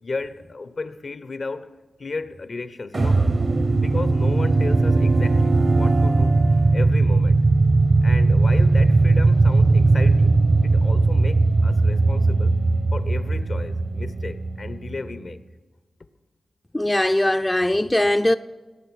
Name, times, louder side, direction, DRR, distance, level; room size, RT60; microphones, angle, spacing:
voice 1, 0.0-1.7 2.0-3.2 3.7-6.4 6.7-7.4 8.0-10.3 10.6-12.5 12.9-15.4, left 3 dB, 60° left, 0.7 m, -34 dB
sound 1, 2.9-15.2, right 3 dB, 50° right, 0.7 m, -18 dB
voice 2, 16.7-18.4, left 1 dB, 20° left, 0.4 m, -20 dB
18.0 x 8.2 x 6.3 m
cardioid pair, 45°, 0 cm